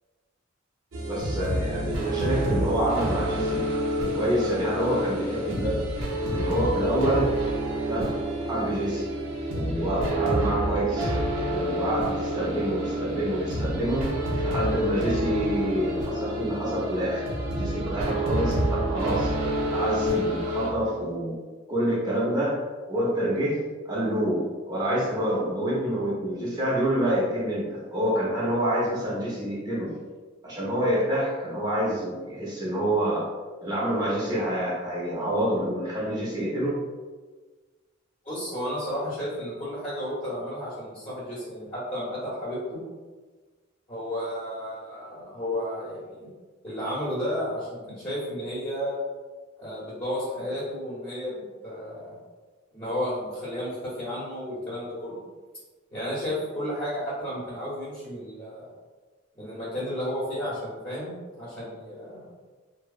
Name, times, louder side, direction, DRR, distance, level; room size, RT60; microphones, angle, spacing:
sound 1, 0.9-20.7, right 1 dB, 80° right, 0.5 m, -28 dB
voice 1, 1.1-3.7 4.0-5.9 6.3-7.4 7.8-9.1 9.5-14.1 14.4-17.2 17.5-19.3 19.6-21.4 21.7-22.6 22.9-30.0 30.4-33.3 33.6-36.8, equal, 20° right, -6 dB, 0.7 m, -27 dB
voice 2, 38.2-42.8 43.9-46.3 46.6-48.9 49.6-51.3 51.6-52.2 52.7-55.2 55.9-58.7 59.3-62.3, equal, 25° left, -10 dB, 1.0 m, -32 dB
3.0 x 2.0 x 2.4 m, 1.4 s
head